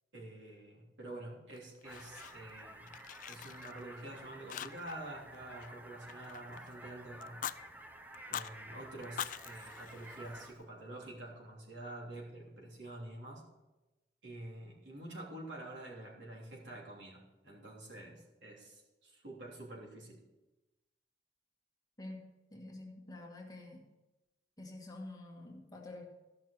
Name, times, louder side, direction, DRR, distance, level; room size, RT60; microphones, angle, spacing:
voice 1, 0.1-3.0 3.3-7.4 8.3-13.4 14.2-20.2, right 1 dB, 80° right, -3 dB, 3.2 m, -48 dB
Fire, 1.5-2.6 2.9-4.1 4.5-5.1 5.3-6.7 7.2-7.6 8.1-8.5 9.0-10.6, left 10 dB, 45° left, 0.3 m, -44 dB
sound 1, 1.8-10.5, right 1 dB, 10° right, 0.7 m, -52 dB
voice 2, 22.0-23.8 24.6-26.1, left 2 dB, 20° left, 0 dB, 1.6 m, -48 dB
14.0 x 6.0 x 6.6 m, 1.1 s
head